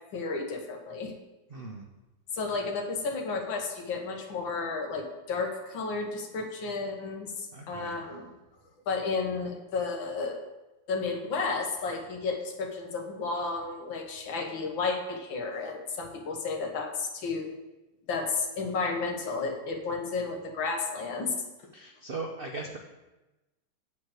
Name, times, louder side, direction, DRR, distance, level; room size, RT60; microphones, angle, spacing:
voice 1, 0.1-1.1 2.3-8.3 8.9-10.4 10.9-17.6 18.1-21.3, left 4 dB, 70° left, 3 dB, 1.9 m, -32 dB
voice 2, 1.5-1.9 7.5-8.0 21.7-22.8, right 3 dB, 85° right, 1 dB, 0.5 m, -38 dB
8.6 x 4.6 x 6.6 m, 1.0 s
omnidirectional pair, 2.2 m